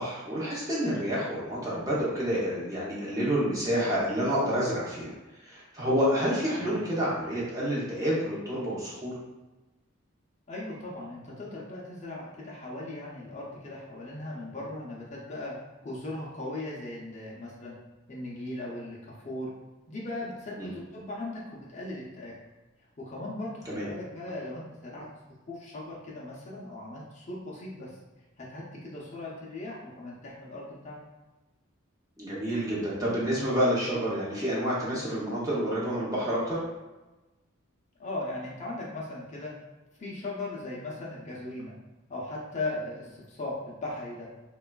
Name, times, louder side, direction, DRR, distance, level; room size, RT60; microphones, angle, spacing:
voice 1, 0.0-5.1 5.4-9.1 20.6-20.7 23.7-23.9 32.2-36.6, equal, 15° right, -7 dB, 0.6 m, -28 dB
voice 2, 10.5-15.5 15.8-17.8 18.1-19.5 19.9-22.3 23.0-25.1 25.5-28.0 28.4-31.0 38.0-39.5 40.0-41.7 42.1-44.3, left 2 dB, 35° left, -5 dB, 0.5 m, -38 dB
3.1 x 2.2 x 2.2 m, 1.1 s
head